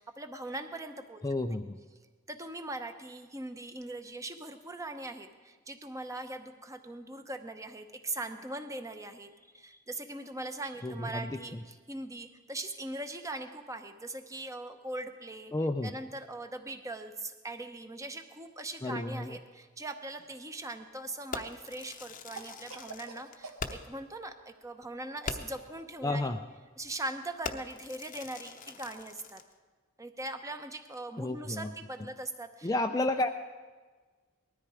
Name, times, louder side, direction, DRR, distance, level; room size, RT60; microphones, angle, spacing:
voice 1, 0.0-1.2 1.5-1.6 2.3-15.5 15.8-26.2 26.8-29.4 30.0-32.7, right 2 dB, 15° right, 8 dB, 0.8 m, -41 dB
voice 2, 1.2-1.8 10.8-11.6 15.5-15.9 18.8-19.4 26.0-26.4 31.2-31.7 32.6-33.3, left 2 dB, 15° left, 5 dB, 0.4 m, -31 dB
Cough, 20.1-20.9 22.4-23.6, right 4 dB, 75° right, 1.5 m, -47 dB
Fireworks, 21.3-24.0 24.4-24.5 24.8-24.9 25.2-25.7 26.3-26.5 26.8-27.1 27.4-29.5, left 4 dB, 35° left, 0.7 m, -42 dB
19.5 x 13.0 x 4.8 m, 1.4 s
head